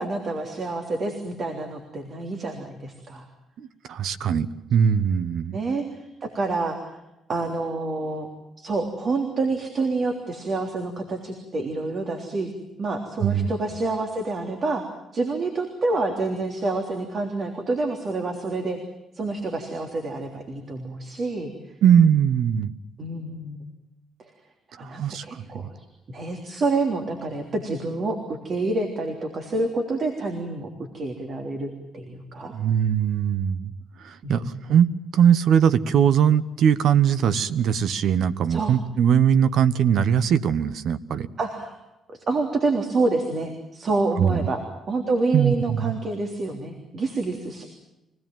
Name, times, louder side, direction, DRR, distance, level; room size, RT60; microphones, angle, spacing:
voice 1, 0.0-3.3 5.5-6.8 7.3-8.3 8.6-12.5 12.8-14.8 15.1-18.8 19.1-21.5 23.0-23.6 24.8-25.7 26.1-32.6 34.2-34.6 38.5-38.8 41.4-41.8 42.1-44.6 44.9-47.7, right 3 dB, 50° right, 4 dB, 3.5 m, -28 dB
voice 2, 3.6-5.6 13.2-13.5 21.8-22.7 24.8-25.7 32.5-33.7 34.0-41.3 44.2-44.4 45.3-45.9, right 8 dB, 70° right, 15 dB, 1.2 m, -21 dB
25.5 x 17.5 x 9.2 m, 0.90 s
cardioid pair, 90°, 0 cm